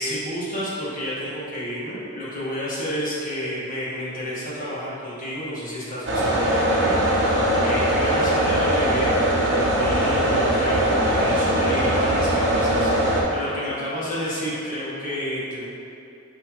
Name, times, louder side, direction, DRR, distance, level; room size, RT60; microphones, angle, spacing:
voice 1, 0.0-15.6, equal, 40° left, -9 dB, 1.3 m, -30 dB
sound 1, 6.1-13.2, right 1 dB, 55° right, 0.7 m, -21 dB
6.1 x 2.9 x 2.9 m, 2.7 s
head